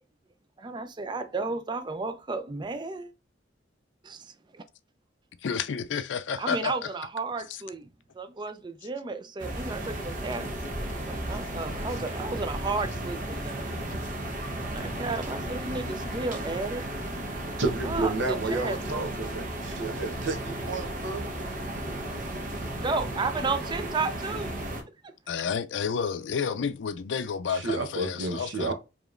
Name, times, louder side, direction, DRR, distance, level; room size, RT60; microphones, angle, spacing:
voice 1, 0.6-3.1 4.0-4.6 6.4-7.9 8.1-10.5 11.1-13.7 14.6-16.8 17.8-19.1 22.7-24.6, right 3 dB, 25° right, 0.4 m, -33 dB
voice 2, 5.4-6.7 7.5-7.6 25.3-28.7, left 6 dB, 75° left, 0.4 m, -30 dB
sound 1, 9.4-24.8, right 1 dB, 45° right, 0.9 m, -34 dB
voice 3, 17.6-21.2 27.5-28.7, right 3 dB, 85° right, 0.9 m, -31 dB
5.0 x 3.0 x 2.4 m
head